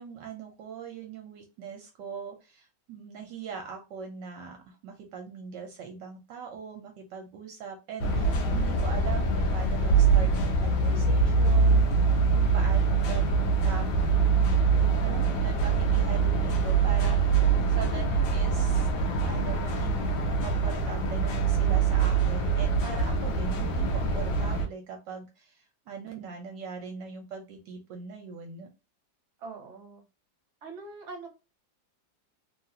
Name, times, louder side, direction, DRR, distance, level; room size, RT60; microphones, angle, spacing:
voice 1, 0.0-14.5 15.0-18.9 19.3-28.7, right 6 dB, 75° right, 3 dB, 1.3 m, -41 dB
sound 1, 8.0-24.7, right 4 dB, 90° left, 1.4 m, -24 dB
voice 2, 11.9-12.2 29.4-30.0 30.6-31.3, right 3 dB, 45° right, 2 dB, 1.2 m, -43 dB
3.4 x 2.4 x 2.7 m, 0.29 s
omnidirectional pair, 2.1 m